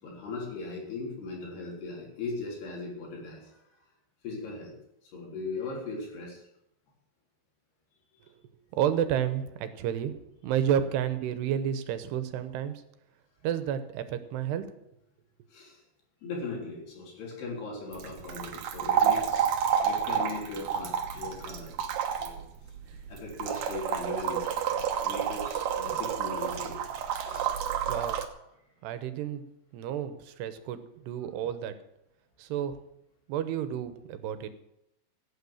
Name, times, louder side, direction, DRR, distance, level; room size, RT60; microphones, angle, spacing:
voice 1, 0.0-3.6 4.2-4.8 5.1-6.4 10.4-10.5 15.5-15.8 16.2-19.5 19.8-21.7 22.2-22.4 23.1-24.5 25.0-26.8 27.2-27.6, left 3 dB, 75° left, -1 dB, 5.8 m, -38 dB
voice 2, 8.8-10.2 10.4-12.7 13.4-14.6 27.9-28.2 28.8-29.4 29.7-31.7 32.4-32.8 33.3-34.5, right 9 dB, 85° right, 10 dB, 3.1 m, -30 dB
sound 1, 17.9-28.2, right 8 dB, 65° right, 2.4 m, -30 dB
16.0 x 9.1 x 7.2 m, 0.81 s
omnidirectional pair, 4.7 m